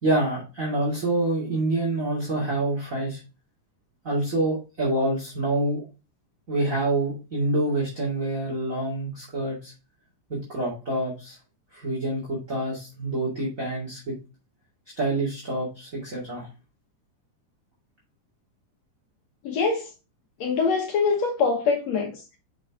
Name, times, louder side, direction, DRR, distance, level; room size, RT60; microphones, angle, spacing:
voice 1, 0.0-3.2 4.0-5.8 6.5-9.7 10.3-11.4 11.7-14.1 15.0-16.5, right 2 dB, 25° right, 2.4 m, -27 dB
voice 2, 19.4-19.9 20.4-22.4, left 5 dB, 65° left, 2.0 m, -24 dB
6.0 x 6.0 x 3.6 m
omnidirectional pair, 3.7 m